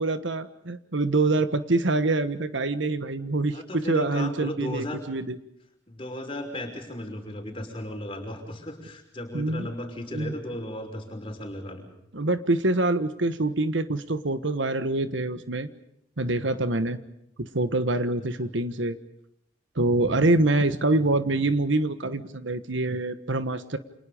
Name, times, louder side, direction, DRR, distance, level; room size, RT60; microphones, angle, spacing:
voice 1, 0.0-5.4 9.3-9.7 10.1-10.3 12.1-15.7 16.2-17.0 17.4-19.0 19.7-23.8, right 2 dB, 65° right, 11 dB, 1.4 m, -25 dB
voice 2, 3.5-5.0 5.9-11.9 18.4-18.5, left 1 dB, 25° left, 3 dB, 5.8 m, -35 dB
30.0 x 27.0 x 5.2 m, 0.77 s
head